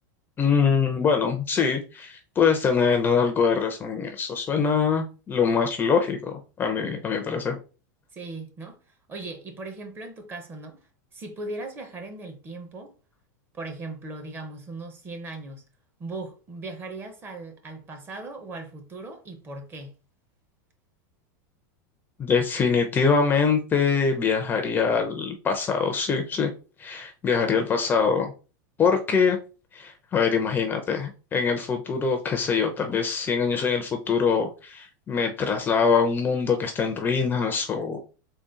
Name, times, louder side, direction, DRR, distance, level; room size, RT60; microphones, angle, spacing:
voice 1, 0.4-7.6 22.2-26.5 26.8-28.3 28.8-29.4 29.7-38.0, left 5 dB, 20° left, 0.5 m, -23 dB
voice 2, 8.1-10.8 11.1-12.9 13.5-15.6 16.0-19.9, right 2 dB, 20° right, 0.7 m, -38 dB
3.7 x 2.2 x 3.8 m
supercardioid pair, 145°, 10 cm